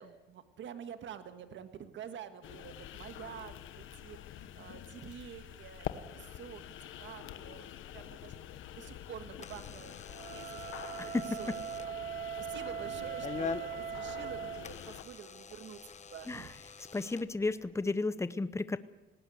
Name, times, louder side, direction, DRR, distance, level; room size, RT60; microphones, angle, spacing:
voice 1, 0.0-6.6 7.0-8.4 8.7-11.5 12.1-15.8 16.1-16.5, right 8 dB, 70° right, 9 dB, 1.6 m, -48 dB
sound 1, 2.4-15.0, left 11 dB, 80° left, 1.2 m, -46 dB
Door / Alarm, 8.7-17.9, left 6 dB, 35° left, 1.0 m, -46 dB
Wind instrument woodwind instrument, 10.0-14.7, right 9 dB, 45° right, 1.0 m, -40 dB
voice 2, 11.0-11.6 16.3-16.5 16.9-18.8, left 3 dB, 15° left, 14 dB, 0.9 m, -33 dB
19.0 x 18.0 x 8.0 m, 1.0 s
cardioid pair, 90°, 20 cm